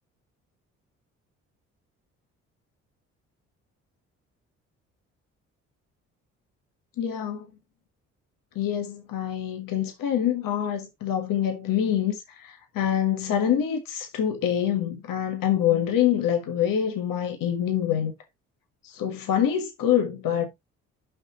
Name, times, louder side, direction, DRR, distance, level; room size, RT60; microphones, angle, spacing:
voice 1, 7.0-7.5 8.5-18.1 18.8-20.5, left 10 dB, 65° left, 1.5 m, -25 dB
6.2 x 5.8 x 4.2 m
hypercardioid pair, 50°, 36 cm